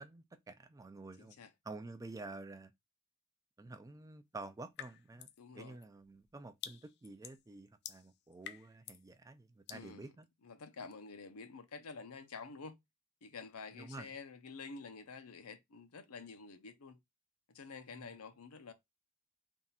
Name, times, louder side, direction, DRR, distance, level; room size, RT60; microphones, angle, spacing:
voice 1, 0.0-1.4 1.6-2.7 3.6-5.3 5.5-10.3 13.7-14.1 18.0-18.2, right 2 dB, 15° right, 0.4 m, -49 dB
voice 2, 1.2-1.5 5.4-5.8 9.7-10.1 10.4-12.8 13.2-17.0 17.5-18.7, left 4 dB, 85° left, 0.7 m, -49 dB
sound 1, 4.8-5.4 5.8-9.1 9.7-9.9, left 10 dB, 50° left, 0.4 m, -49 dB
3.6 x 2.4 x 4.1 m
head